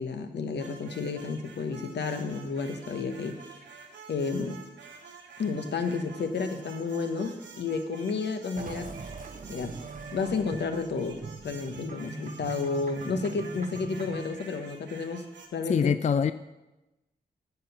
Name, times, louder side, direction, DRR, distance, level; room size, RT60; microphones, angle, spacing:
voice 1, 0.0-3.4 4.1-4.6 5.4-8.9 9.5-9.8 10.1-15.3 15.5-16.2, left 4 dB, 75° left, 7 dB, 0.9 m, -31 dB
sound 1, 0.6-15.5, right 4 dB, 90° right, 1.1 m, -49 dB
sound 2, 8.6-14.4, right 4 dB, 45° right, 0.7 m, -41 dB
voice 2, 15.7-16.3, left 7 dB, 40° left, 12 dB, 0.4 m, -23 dB
9.4 x 5.9 x 5.7 m, 1.0 s
cardioid pair, 60°, 18 cm